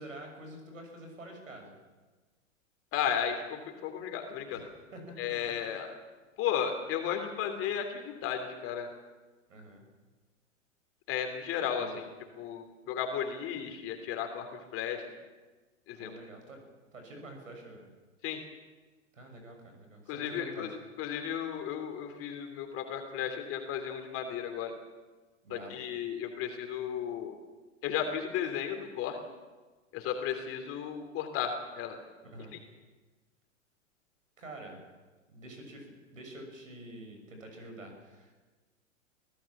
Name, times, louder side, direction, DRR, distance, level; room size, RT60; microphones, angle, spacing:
voice 1, 0.0-1.7 4.5-5.3 9.5-9.9 11.8-12.0 16.0-16.6 16.9-17.9 19.1-20.7 25.4-25.8 32.2-32.5 34.4-34.8 35.3-38.3, right 1 dB, 75° right, 4 dB, 6.8 m, -47 dB
voice 2, 2.9-4.6 5.2-5.9 6.4-8.9 11.1-12.0 12.4-15.0 15.9-16.1 18.2-18.4 20.1-24.7 25.5-27.3 27.8-29.2 29.9-32.0, left 8 dB, 35° left, 5 dB, 3.0 m, -34 dB
24.5 x 16.5 x 7.3 m, 1.3 s
figure-of-eight pair, 100°, 39 cm